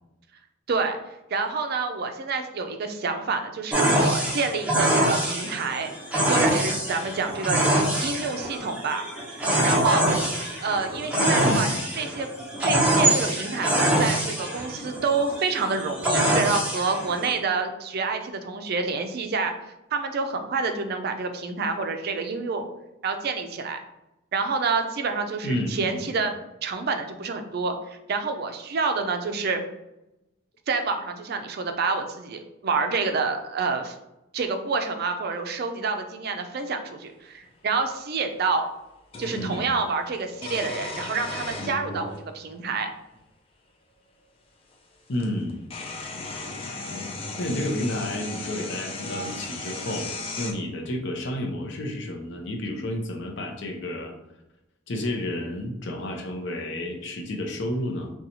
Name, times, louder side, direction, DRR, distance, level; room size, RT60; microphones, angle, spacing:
voice 1, 0.7-1.0 1.3-5.9 6.3-7.6 8.0-9.0 9.4-10.0 10.6-11.7 11.9-12.3 12.6-19.5 19.9-22.7 23.0-23.8 24.3-26.3 26.6-29.6 30.7-33.9 34.3-38.7 39.2-42.9, right 4 dB, 55° right, 6 dB, 0.4 m, -28 dB
sound 1, 3.7-17.3, right 1 dB, 5° right, 0.7 m, -24 dB
voice 2, 11.2-11.7 25.4-26.1 39.3-39.7 45.1-45.6 47.4-50.1 50.4-54.1 54.9-58.1, left 1 dB, 65° left, 2 dB, 0.6 m, -30 dB
sound 2, 37.4-37.5 39.1-39.7 40.4-42.2 43.1-43.2 44.7-44.8 45.1-50.5, left 3 dB, 30° left, 0.4 m, -35 dB
3.9 x 2.3 x 2.8 m, 0.92 s
head